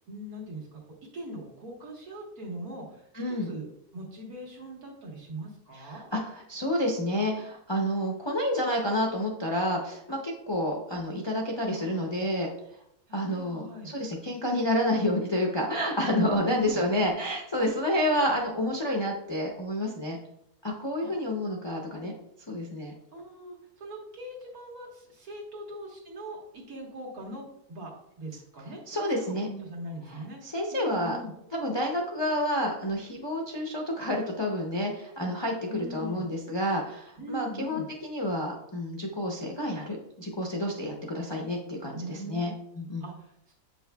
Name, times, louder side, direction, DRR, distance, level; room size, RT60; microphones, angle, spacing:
voice 1, 0.1-0.8 1.1-6.1 11.7-12.1 13.1-13.9 16.2-16.8 21.0-21.1 23.1-31.3 35.7-36.3 37.2-37.9 41.9-42.4 43.0-43.5, equal, 70° right, -1 dB, 1.9 m, -41 dB
voice 2, 3.1-3.5 5.7-12.5 13.1-20.2 20.6-22.1 22.5-22.9 28.9-29.5 30.1-31.2 31.5-43.0, left 1 dB, 35° left, -1 dB, 0.4 m, -29 dB
8.0 x 5.4 x 2.2 m, 0.77 s
omnidirectional pair, 1.6 m